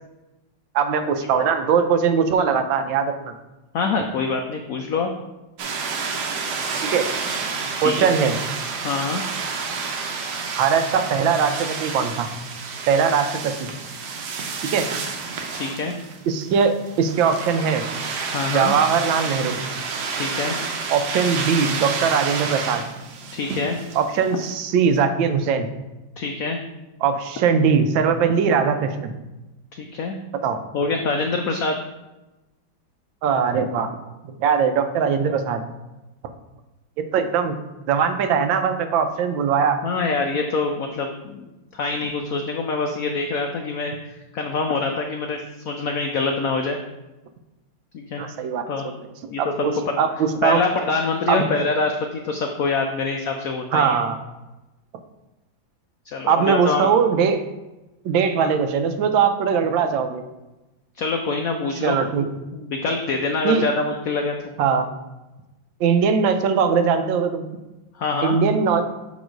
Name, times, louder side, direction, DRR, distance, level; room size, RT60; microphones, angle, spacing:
voice 1, 0.7-3.3 6.9-7.1 7.8-8.3 10.5-12.3 12.9-13.7 14.7-14.8 16.3-17.8 18.5-19.6 20.9-22.8 23.9-25.7 27.0-29.1 30.4-30.6 33.2-33.9 34.4-35.6 37.0-37.6 37.9-39.8 48.2-48.6 49.4-50.6 51.3-51.5 53.7-54.2 56.3-57.4 58.0-60.2 61.8-62.3 63.4-63.6 64.6-64.9 65.8-67.5 68.2-68.8, right 6 dB, 85° right, 7 dB, 1.4 m, -20 dB
voice 2, 3.7-5.1 7.8-8.1 8.8-9.2 15.5-16.0 18.3-18.7 20.1-20.6 23.3-23.8 26.2-26.6 29.7-30.1 30.7-31.8 39.8-46.8 47.9-48.2 48.7-48.9 49.3-49.7 50.4-54.0 56.1-56.9 58.4-58.6 61.0-62.0 62.5-64.4 68.0-68.4, left 4 dB, 80° left, 4 dB, 0.7 m, -25 dB
sound 1, 5.6-24.5, right 5 dB, 65° right, 1.2 m, -30 dB
7.0 x 3.0 x 5.0 m, 1.0 s
omnidirectional pair, 2.1 m